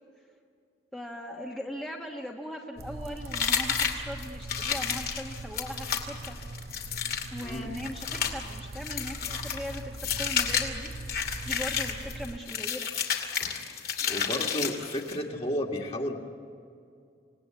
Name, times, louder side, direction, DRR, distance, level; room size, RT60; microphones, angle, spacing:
voice 1, 0.9-6.4 7.3-11.2 11.4-12.9 14.2-14.6, equal, 5° left, -1 dB, 1.4 m, -40 dB
sound 1, 2.8-12.4, right 2 dB, 55° right, 0.8 m, -41 dB
sound 2, 3.3-15.2, left 7 dB, 55° left, 2.6 m, -31 dB
voice 2, 7.4-7.7 14.1-16.2, equal, 35° left, 1 dB, 2.3 m, -32 dB
27.0 x 18.5 x 9.5 m, 2.4 s
head